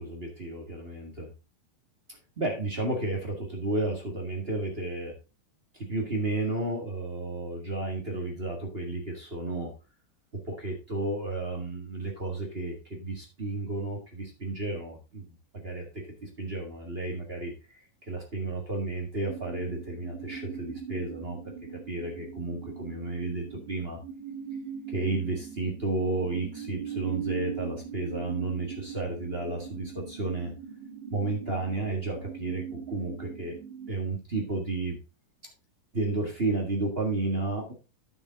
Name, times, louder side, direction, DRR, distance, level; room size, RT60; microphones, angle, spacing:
voice 1, 0.0-1.3 2.1-5.2 5.7-9.7 10.5-24.0 24.9-30.5 31.1-33.6 33.9-35.0 35.9-37.7, right 2 dB, 30° right, 1 dB, 1.0 m, -32 dB
sound 1, 19.3-33.9, right 7 dB, 75° right, 2.8 m, -40 dB
9.5 x 7.0 x 3.7 m, 0.28 s
omnidirectional pair, 3.8 m